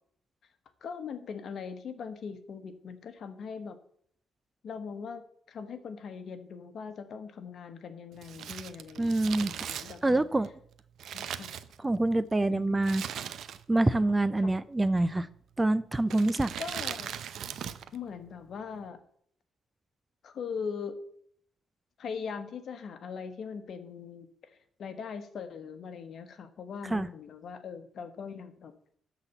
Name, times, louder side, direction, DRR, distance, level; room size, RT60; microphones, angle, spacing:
voice 1, 0.8-3.8 4.6-5.2 5.5-10.2 11.1-11.5 12.5-12.8 14.4-14.5 16.6-17.2 17.9-19.0 20.2-21.0 22.0-24.5 24.8-28.7, left 6 dB, 55° left, 9 dB, 1.2 m, -40 dB
Crumpling crinkling, 8.2-12.2 12.8-13.9 14.1-14.2 15.0-15.4 16.0-18.0 18.2-18.3, right 9 dB, 65° right, 0.6 m, -39 dB
voice 2, 9.0-9.7 10.0-10.5 11.8-13.0 13.7-15.3 15.6-16.5 26.9-27.1, right 2 dB, 15° right, 16 dB, 0.4 m, -26 dB
12.5 x 4.1 x 7.0 m, 0.65 s
cardioid pair, 120°, 0 cm